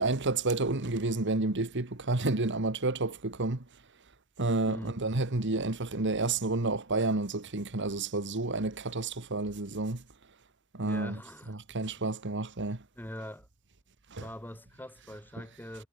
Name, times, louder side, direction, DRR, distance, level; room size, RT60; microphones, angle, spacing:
voice 1, 0.0-3.6 4.4-10.0 10.7-11.2 11.5-12.8 14.1-14.3, right 2 dB, 60° right, 1.7 m, -30 dB
voice 2, 4.7-5.0 10.8-11.8 13.0-13.5 14.2-15.9, equal, 10° left, 6.9 m, -43 dB
head